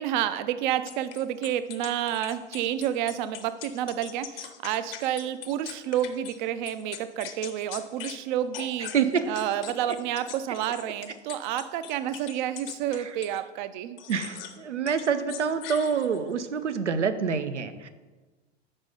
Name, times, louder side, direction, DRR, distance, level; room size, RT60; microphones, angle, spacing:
voice 1, 0.0-8.9 9.3-14.0, right 11 dB, 45° right, 13 dB, 0.5 m, -30 dB
sound 1, 0.9-6.4 6.7-8.2 8.5-13.4 14.0-14.6 14.9-16.3, left 10 dB, 55° left, 0.8 m, -42 dB
voice 2, 8.9-9.3 14.1-17.9, right 6 dB, 85° right, 11 dB, 0.6 m, -27 dB
5.4 x 5.1 x 5.4 m, 1.3 s
figure-of-eight pair, 90°, 34 cm